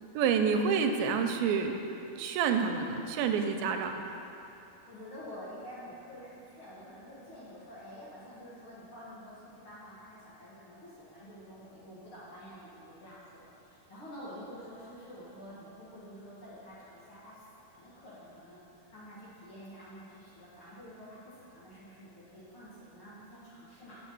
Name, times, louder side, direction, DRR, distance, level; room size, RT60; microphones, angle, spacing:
voice 1, 0.1-1.7 2.2-4.0, right 6 dB, 90° right, 5 dB, 2.5 m, -28 dB
voice 2, 4.7-17.4 17.7-24.0, equal, 45° left, -9 dB, 2.0 m, -49 dB
7.1 x 6.3 x 7.6 m, 3.0 s
omnidirectional pair, 4.3 m